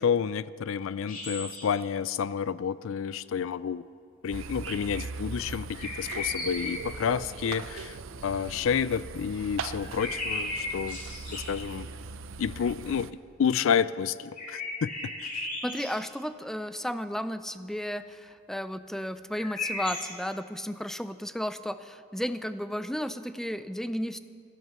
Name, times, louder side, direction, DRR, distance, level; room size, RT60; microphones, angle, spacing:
voice 1, 0.0-3.8 4.2-8.0 8.2-11.0 11.3-11.9 12.4-14.9 15.3-15.5, left 7 dB, 75° left, 18 dB, 0.4 m, -29 dB
sound 1, 1.0-1.8 5.7-7.0 9.8-11.6 14.4-16.0 19.3-20.1, left 2 dB, 45° left, 2.9 m, -36 dB
sound 2, 4.3-13.1, right 4 dB, 80° right, 0.6 m, -40 dB
voice 2, 15.6-24.2, equal, ahead, 12 dB, 0.4 m, -33 dB
16.0 x 11.0 x 6.9 m, 2.3 s
head